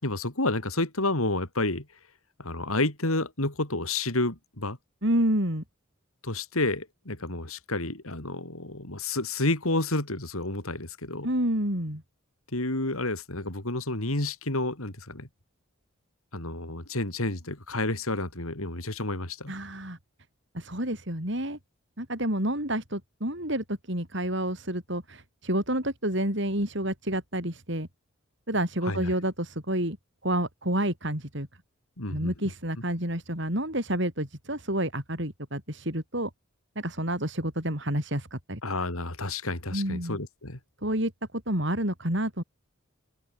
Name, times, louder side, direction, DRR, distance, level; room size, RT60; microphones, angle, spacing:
voice 1, 0.0-1.8 2.4-4.8 6.2-11.3 12.5-15.3 16.3-19.5 28.9-29.1 32.0-32.3 38.6-40.6, left 2 dB, 85° left, 4.4 m, -30 dB
voice 2, 5.0-5.6 11.2-12.0 19.5-20.0 20.5-21.6 22.0-27.9 28.5-30.0 30.2-31.5 32.1-36.3 36.8-38.6 39.7-40.2 40.8-41.1 41.5-42.4, right 1 dB, 55° right, 7.6 m, -29 dB
open air
head